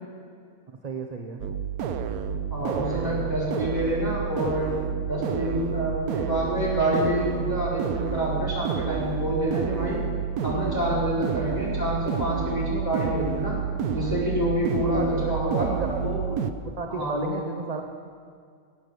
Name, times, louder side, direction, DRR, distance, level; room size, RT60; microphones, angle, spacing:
voice 1, 0.8-1.4 2.6-3.4 11.4-11.6 14.8-16.4 16.8-17.8, right 4 dB, 35° right, 3 dB, 0.7 m, -34 dB
sound 1, 1.4-16.5, right 7 dB, 85° right, 1.2 m, -29 dB
voice 2, 2.5-4.7 5.1-10.0 10.4-13.6 13.9-15.7 16.0-16.2 16.9-17.3, right 1 dB, 15° left, -8 dB, 4.6 m, -27 dB
18.5 x 7.9 x 6.8 m, 2.2 s
omnidirectional pair, 1.5 m